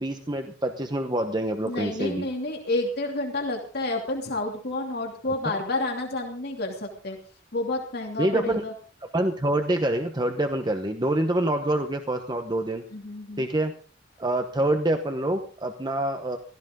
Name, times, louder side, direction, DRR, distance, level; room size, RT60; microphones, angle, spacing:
voice 1, 0.0-2.3 8.2-8.6 9.1-12.8 13.4-13.7 14.2-16.4, right 1 dB, 25° right, 5 dB, 1.0 m, -26 dB
voice 2, 1.7-7.2 7.5-8.7 12.9-13.5, left 2 dB, 55° left, 1 dB, 2.8 m, -30 dB
16.5 x 14.5 x 3.8 m, 0.41 s
head